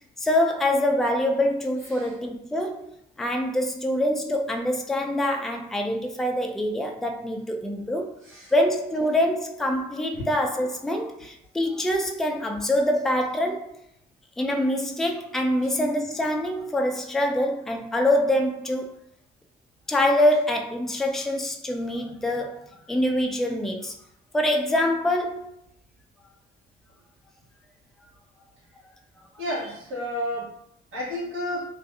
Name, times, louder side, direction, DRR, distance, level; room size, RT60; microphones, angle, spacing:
voice 1, 0.2-2.9 3.2-8.2 8.5-13.7 14.4-18.9 19.9-23.9 24.3-25.5, left 1 dB, ahead, 2 dB, 0.3 m, -25 dB
voice 2, 29.4-30.6 30.9-31.7, left 1 dB, 85° right, -7 dB, 1.4 m, -31 dB
2.6 x 2.3 x 2.3 m, 0.76 s
cardioid pair, 90°, 20 cm